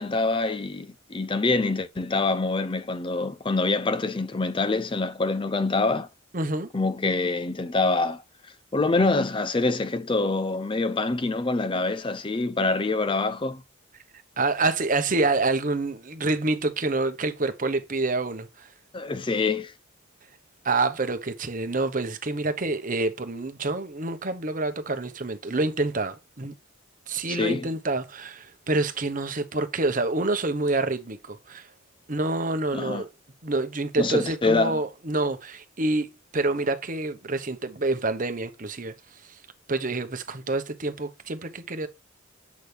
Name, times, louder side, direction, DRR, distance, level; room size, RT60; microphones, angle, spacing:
voice 1, 0.0-6.1 6.7-8.2 8.7-13.6 18.9-19.7 27.3-27.7 32.7-33.0 34.0-34.8, left 3 dB, 25° left, 0.5 m, -25 dB
voice 2, 6.3-6.7 14.4-18.7 20.6-26.5 27.1-31.7 32.1-33.1 33.4-38.9 39.7-41.9, right 2 dB, 40° right, 1.0 m, -27 dB
8.3 x 6.1 x 3.4 m
head